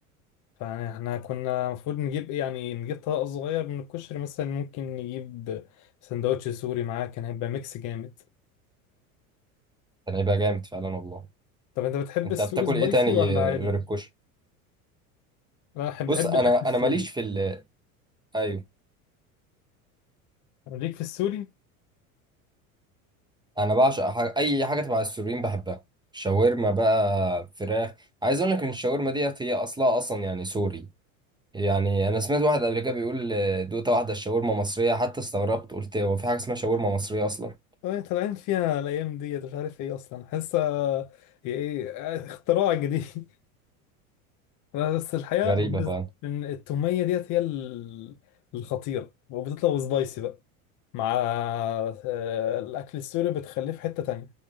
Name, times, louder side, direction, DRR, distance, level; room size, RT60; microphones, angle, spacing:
voice 1, 0.6-5.6 6.0-8.1 11.8-13.7 15.7-16.5 16.8-17.1 20.7-21.5 37.8-41.1 41.4-43.3 44.7-45.9 46.2-48.2 48.5-50.4 50.9-54.3, left 11 dB, 45° left, 0.6 m, -29 dB
voice 2, 10.1-11.2 12.4-14.0 16.1-17.6 18.3-18.6 23.6-25.8 26.1-27.9 28.2-30.9 31.5-37.5 45.4-46.1, right 1 dB, 10° right, 0.6 m, -25 dB
3.6 x 2.3 x 3.3 m
hypercardioid pair, 90°, 42 cm